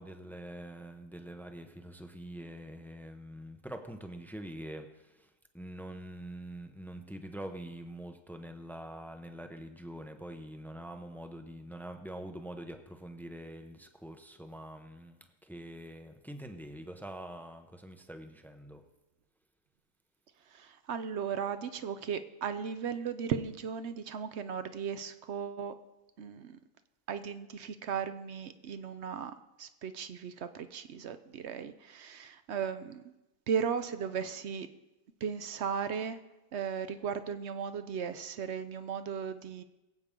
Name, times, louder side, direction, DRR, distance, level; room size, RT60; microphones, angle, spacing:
voice 1, 0.0-18.8, right 1 dB, 5° left, 6 dB, 0.4 m, -45 dB
voice 2, 20.5-25.7 26.2-26.6 27.1-33.1 33.5-34.7 35.2-36.2 36.5-39.6, right 7 dB, 60° right, 11 dB, 0.7 m, -36 dB
22.0 x 8.4 x 3.7 m, 1.0 s
omnidirectional pair, 1.6 m